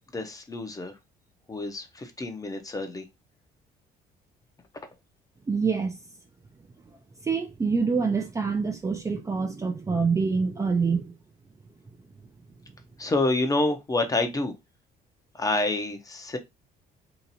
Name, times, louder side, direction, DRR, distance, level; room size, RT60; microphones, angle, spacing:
voice 1, 0.1-0.9 1.5-3.0 13.0-14.5 15.4-16.4, left 2 dB, 20° left, 0.7 m, -28 dB
voice 2, 5.5-6.0 7.2-11.1, right 5 dB, 20° right, 0.5 m, -26 dB
2.9 x 2.5 x 4.0 m
cardioid pair, 110°, 17 cm